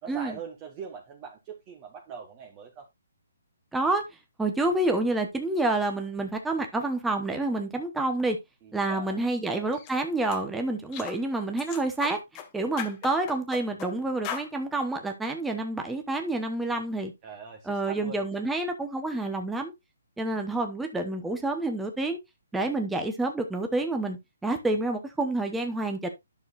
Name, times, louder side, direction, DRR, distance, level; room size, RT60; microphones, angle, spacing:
voice 1, 0.0-2.9 8.6-9.7 17.2-18.2, right 6 dB, 25° right, 1.4 m, -42 dB
voice 2, 3.7-4.0 4.4-8.4 8.7-12.2 12.5-17.1 17.7-19.7 20.2-22.2 22.5-26.1, right 2 dB, 5° right, 1.0 m, -28 dB
sound 1, 9.7-9.9 10.3-10.5 10.9-11.2 11.6-12.5 12.8-13.9 14.2-14.5, left 8 dB, 25° left, 1.2 m, -37 dB
10.5 x 6.5 x 2.5 m
hypercardioid pair, 150°, 0 cm